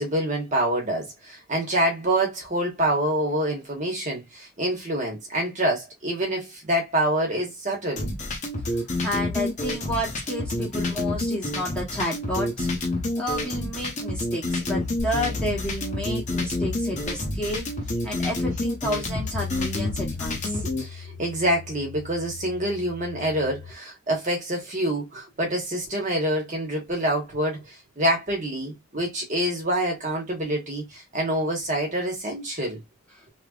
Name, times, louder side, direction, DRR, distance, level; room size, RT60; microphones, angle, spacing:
voice 1, 0.0-8.1 16.9-17.0 20.6-32.8, right 1 dB, 35° right, 1.3 m, -26 dB
sound 1, 8.0-20.8, left 2 dB, 35° left, 0.9 m, -28 dB
voice 2, 8.7-12.7 13.2-17.7 18.0-20.6, equal, 5° left, 1.1 m, -31 dB
sound 2, 15.0-23.7, left 4 dB, 85° left, 0.6 m, -38 dB
3.3 x 3.0 x 2.4 m
head